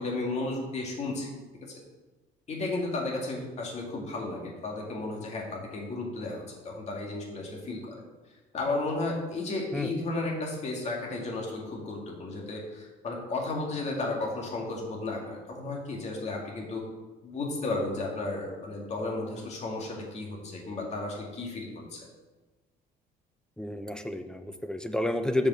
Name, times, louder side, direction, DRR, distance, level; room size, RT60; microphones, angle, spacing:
voice 1, 0.0-1.7 2.5-8.0 8.5-16.8 17.2-22.1, left 2 dB, 40° left, -1 dB, 2.3 m, -33 dB
voice 2, 23.6-25.5, left 1 dB, 5° left, 8 dB, 0.6 m, -30 dB
6.8 x 5.3 x 6.4 m, 1.2 s
cardioid pair, 110°, 17 cm